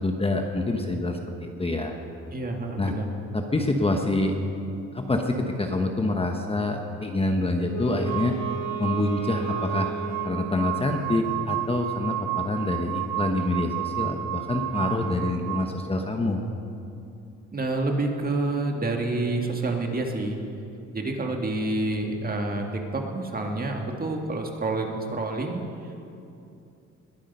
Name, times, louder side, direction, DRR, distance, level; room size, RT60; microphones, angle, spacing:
voice 1, 0.0-1.9 2.8-2.9 3.3-4.4 4.9-8.4 8.8-9.9 10.2-16.4, left 2 dB, 20° left, 4 dB, 1.1 m, -26 dB
voice 2, 2.3-3.1 17.5-20.4 20.9-25.9, right 2 dB, 30° right, 2 dB, 1.9 m, -28 dB
Wind instrument woodwind instrument, 7.6-10.5, right 4 dB, 65° left, 4.0 m, -34 dB
sound 1, 8.0-15.7, right 15 dB, 80° right, 0.7 m, -32 dB
21.0 x 8.6 x 5.5 m, 2.7 s
cardioid pair, 90°, 30 cm